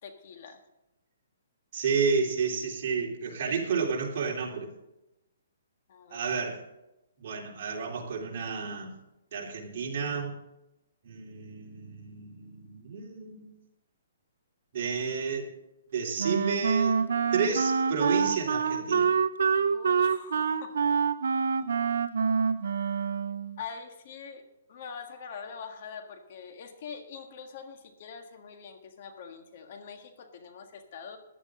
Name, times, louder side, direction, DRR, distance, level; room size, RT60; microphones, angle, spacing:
voice 1, 0.0-0.6 5.9-6.3 19.7-20.8 23.6-24.4 24.7-31.2, left 6 dB, 50° left, 6 dB, 1.7 m, -44 dB
voice 2, 1.7-4.7 6.1-6.6 7.2-8.9 9.3-10.3 11.0-13.5 14.7-15.5 15.9-17.0 17.3-19.1, right 5 dB, 45° right, -2 dB, 3.4 m, -31 dB
Wind instrument woodwind instrument, 16.2-23.6, right 6 dB, 75° right, 0.8 m, -26 dB
14.5 x 11.0 x 3.8 m, 0.91 s
hypercardioid pair, 155°, 0 cm